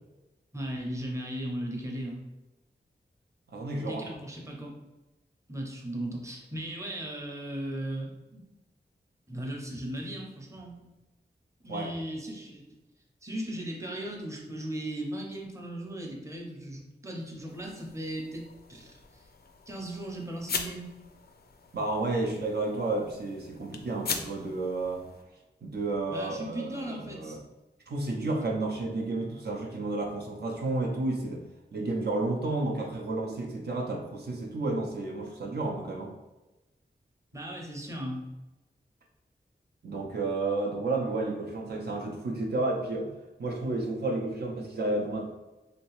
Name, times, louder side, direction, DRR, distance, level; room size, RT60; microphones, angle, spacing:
voice 1, 0.5-2.2 3.7-4.7 5.5-8.4 9.3-10.8 11.6-12.7 13.2-19.3 19.7-20.9 26.1-27.4 37.3-38.2, right 1 dB, 15° right, -1 dB, 0.7 m, -37 dB
voice 2, 3.5-4.2 11.7-11.9 21.7-25.1 25.6-27.4 27.9-31.4 31.7-36.1 39.8-43.1 43.4-45.3, right 2 dB, 65° right, -1 dB, 0.5 m, -31 dB
sound 1, 17.5-25.2, left 5 dB, 60° left, 0.4 m, -41 dB
3.1 x 2.9 x 3.0 m, 1.0 s
wide cardioid pair, 90°, 18 cm